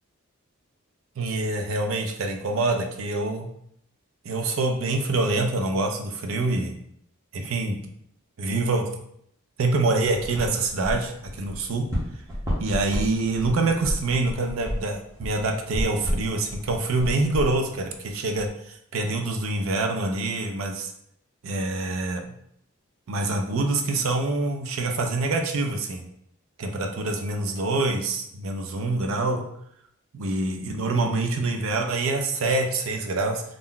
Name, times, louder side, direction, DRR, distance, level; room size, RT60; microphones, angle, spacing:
voice 1, 1.2-3.5 4.2-6.7 7.3-7.8 8.4-8.8 9.6-11.9 12.6-20.9 21.4-22.3 23.1-26.1 26.6-29.5 30.1-33.4, right 2 dB, 70° right, 4 dB, 0.5 m, -26 dB
sound 1, 10.1-18.5, equal, 15° right, 0.8 m, -32 dB
2.5 x 2.1 x 3.7 m, 0.71 s
head